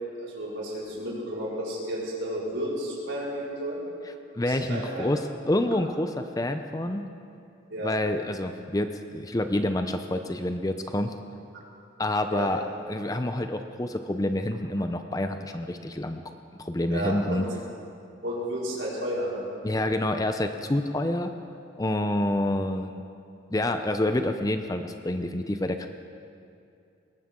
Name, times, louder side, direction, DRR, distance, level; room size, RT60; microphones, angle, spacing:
voice 1, 0.0-3.8 4.4-5.1 7.7-7.9 12.3-12.5 16.9-17.4 18.2-19.5, equal, 75° right, -7 dB, 4.9 m, -32 dB
voice 2, 4.3-7.1 7.8-11.1 12.0-12.6 12.9-16.2 16.6-17.5 19.6-21.3 21.8-23.0 23.5-25.9, left 1 dB, 20° left, 7 dB, 0.5 m, -28 dB
21.0 x 18.5 x 3.8 m, 2.5 s
head